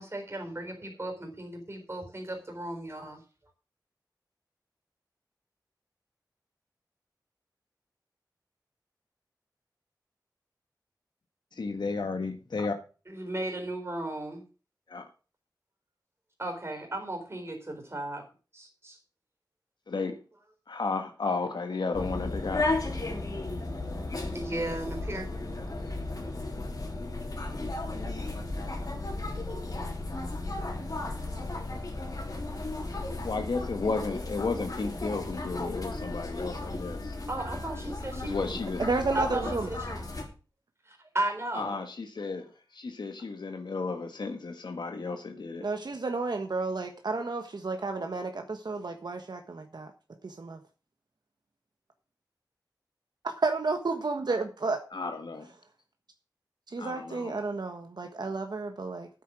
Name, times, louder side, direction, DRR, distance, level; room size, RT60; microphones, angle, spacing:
voice 1, 0.0-3.2 13.1-14.4 16.4-18.2 18.5-19.0 24.3-25.3 37.3-38.5 39.1-40.0 40.9-41.8, right 1 dB, 35° right, 4.2 m, -35 dB
voice 2, 11.6-12.7 14.9-15.0 19.9-20.2 20.7-22.7 33.2-37.1 38.2-38.8 41.5-42.4 42.7-45.6 54.9-55.5 56.8-57.4, left 4 dB, 90° left, 1.5 m, -33 dB
sound 1, 21.9-40.2, left 2 dB, 55° left, 3.5 m, -35 dB
voice 3, 38.8-39.7 45.6-49.9 50.2-50.6 53.2-54.8 56.7-59.1, right 3 dB, 75° right, 1.4 m, -31 dB
9.7 x 8.3 x 6.3 m
wide cardioid pair, 75°, 7 cm